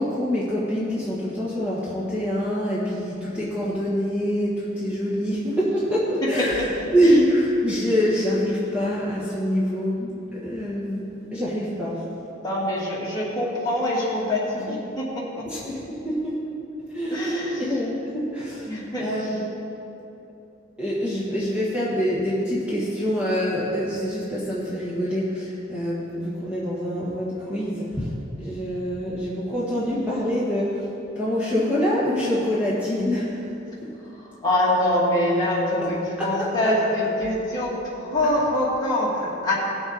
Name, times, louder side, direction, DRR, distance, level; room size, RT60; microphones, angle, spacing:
voice 1, 0.0-12.0 14.7-14.8 15.5-16.4 16.9-19.4 20.8-30.9 31.1-33.4 36.2-36.5, equal, 5° right, -8 dB, 1.5 m, -25 dB
voice 2, 6.8-7.2 12.4-15.0 15.4-15.5 17.1-17.7 18.7-19.0 34.0-39.5, left 1 dB, 20° left, -7 dB, 2.4 m, -24 dB
17.5 x 7.0 x 4.1 m, 2.9 s
head